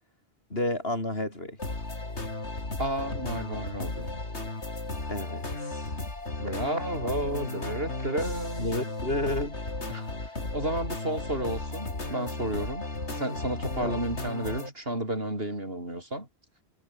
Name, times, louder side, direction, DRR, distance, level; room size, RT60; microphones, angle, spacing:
voice 1, 0.5-1.6 5.1-5.9 8.6-9.7 13.8-14.2, left 1 dB, 60° left, 6.9 m, -31 dB
sound 1, 1.6-14.7, left 2 dB, 90° left, 4.4 m, -35 dB
voice 2, 2.8-4.1 6.4-8.7 9.9-16.3, right 1 dB, 60° right, 7.7 m, -32 dB
omnidirectional pair, 1.1 m